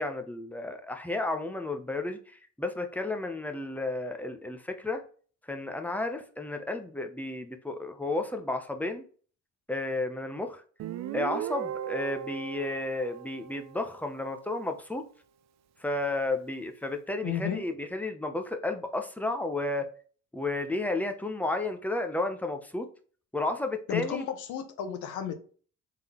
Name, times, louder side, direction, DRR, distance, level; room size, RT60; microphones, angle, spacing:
voice 1, 0.0-2.2 2.6-5.0 5.5-9.0 9.7-10.6 11.1-15.0 15.8-19.9 20.3-22.9 23.3-24.2, left 2 dB, 5° left, 0.7 m, -32 dB
Guitar, 10.8-14.3, right 10 dB, 60° right, 0.4 m, -37 dB
voice 2, 17.2-17.7 23.9-25.3, left 9 dB, 85° left, 0.8 m, -33 dB
3.7 x 3.7 x 3.0 m
cardioid pair, 90°, 30 cm